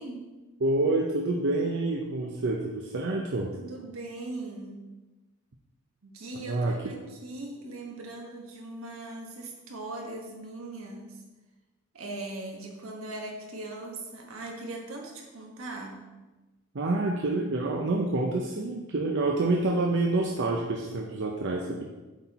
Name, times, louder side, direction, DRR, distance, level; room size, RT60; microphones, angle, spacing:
voice 1, 0.0-0.4 3.5-4.8 6.0-11.2 11.9-16.1, right 2 dB, 80° right, 1 dB, 1.2 m, -40 dB
voice 2, 0.6-3.5 6.5-6.8 16.7-21.8, right 2 dB, 60° right, 0 dB, 0.6 m, -27 dB
8.1 x 4.3 x 4.1 m, 1.2 s
head